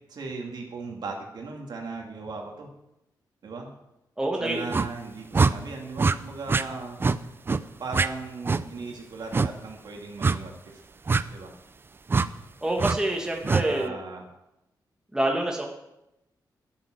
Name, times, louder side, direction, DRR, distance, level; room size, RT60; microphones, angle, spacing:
voice 1, 0.1-2.7 3.4-3.7 4.4-7.0 7.8-10.8 11.3-11.6 13.4-14.4, right 4 dB, 70° right, 1 dB, 2.5 m, -37 dB
voice 2, 4.2-4.6 12.6-14.0 15.1-15.7, right 1 dB, 10° right, 0 dB, 2.0 m, -26 dB
sound 1, 4.7-4.9 5.3-5.5 6.0-6.2 6.5-6.6 7.0-7.2 7.5-7.6 7.9-8.1 8.4-8.6 9.3-9.5 10.2-10.4 11.1-11.2 12.1-12.3 12.8-13.0 13.4-13.6, right 4 dB, 30° right, 0.5 m, -22 dB
12.0 x 9.3 x 6.4 m, 0.88 s
wide cardioid pair, 120°, 8 cm